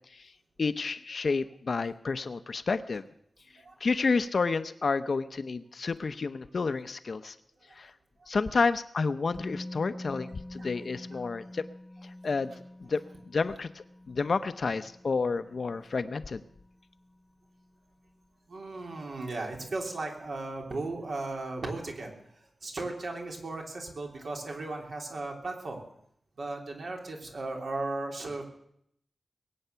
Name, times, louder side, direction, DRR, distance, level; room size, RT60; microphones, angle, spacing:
voice 1, 0.6-3.0 3.8-7.3 7.8-7.9 8.3-11.6 12.0-12.5 12.8-13.0 13.3-16.4, left 4 dB, 60° left, 12 dB, 0.8 m, -30 dB
Musical instrument, 9.3-17.2 17.5-17.7, left 1 dB, 15° left, 1.0 m, -46 dB
voice 2, 18.5-25.8 26.4-28.4, right 2 dB, 70° right, 1 dB, 3.2 m, -36 dB
21.5 x 8.7 x 6.9 m, 0.72 s
wide cardioid pair, 105°, 0 cm